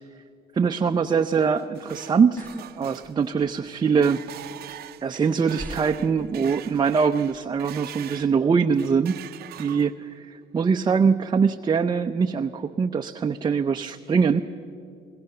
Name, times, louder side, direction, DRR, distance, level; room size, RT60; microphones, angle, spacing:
voice 1, 0.5-2.5 2.8-4.2 4.6-9.2 9.6-14.4, right 5 dB, 25° right, 5 dB, 0.6 m, -23 dB
sound 1, 1.3-8.3 8.7-10.2, right 13 dB, 65° right, 0.7 m, -43 dB
sound 2, 2.4-2.7 3.0-3.7 4.7-4.8 5.6-6.9 7.2-7.7, equal, 10° left, 1.0 m, -39 dB
24.0 x 21.5 x 6.7 m, 2.5 s
cardioid pair, 110°, 17 cm